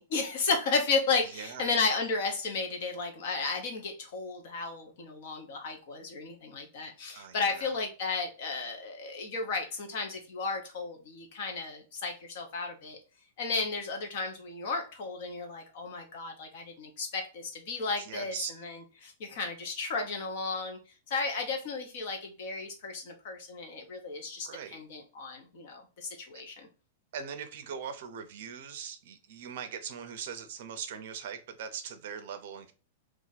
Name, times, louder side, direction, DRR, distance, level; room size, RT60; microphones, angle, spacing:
voice 1, 0.0-13.0 13.4-20.8 21.1-26.7, left 4 dB, 45° left, 0.8 m, -33 dB
voice 2, 1.3-1.7 7.1-7.7 18.0-18.5 24.4-24.8 27.1-32.7, right 7 dB, 50° right, 0.5 m, -41 dB
2.6 x 2.4 x 3.9 m
supercardioid pair, 180°, 0 cm